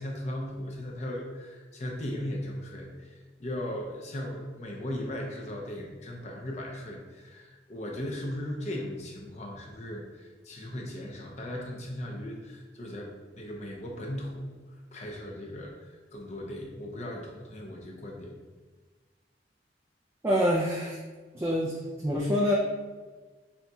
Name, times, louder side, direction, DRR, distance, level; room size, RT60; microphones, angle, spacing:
voice 1, 0.0-3.1 3.4-14.6 14.9-18.3, left 1 dB, 40° left, 0 dB, 0.7 m, -37 dB
voice 2, 20.2-21.0 21.3-22.5, equal, 15° right, -3 dB, 0.4 m, -26 dB
6.8 x 2.8 x 2.3 m, 1.4 s
head